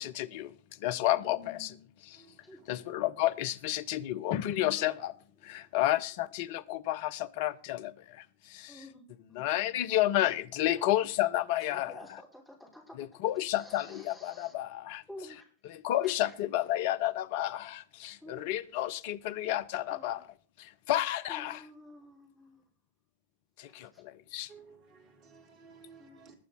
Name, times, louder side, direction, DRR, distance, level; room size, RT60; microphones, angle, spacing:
voice 1, 0.0-1.8 2.0-2.2 2.7-5.1 5.4-8.9 9.3-12.0 12.9-15.0 15.6-20.3 20.6-21.7 23.6-24.5, left 14 dB, 50° left, 0.8 m, -31 dB
voice 2, 1.1-1.7 2.4-2.6 4.6-4.9 8.7-9.0 9.3-9.4 10.7-10.9 11.7-13.2 13.6-14.5 15.1-15.4 16.0-16.3 18.2-18.5 19.9-20.2 21.3-22.7 23.8-24.0 26.0-26.2, left 1 dB, 5° left, 5.0 m, -51 dB
voice 3, 2.1-2.7 18.2-18.4 24.5-26.3, right 5 dB, 40° right, 3.8 m, -56 dB
20.0 x 8.1 x 4.0 m
figure-of-eight pair, 90°, 0 cm